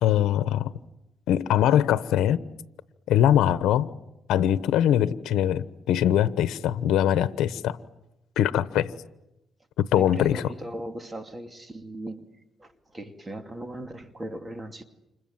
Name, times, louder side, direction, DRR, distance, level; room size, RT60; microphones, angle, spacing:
voice 1, 0.0-0.7 1.3-2.4 3.1-3.9 4.3-7.8 8.4-8.9 9.8-10.4, left 11 dB, 85° left, 14 dB, 1.0 m, -22 dB
voice 2, 9.9-12.3 12.6-14.8, right 1 dB, 20° right, 7 dB, 2.7 m, -38 dB
29.5 x 27.0 x 7.3 m, 0.94 s
cardioid pair, 90°, 0 cm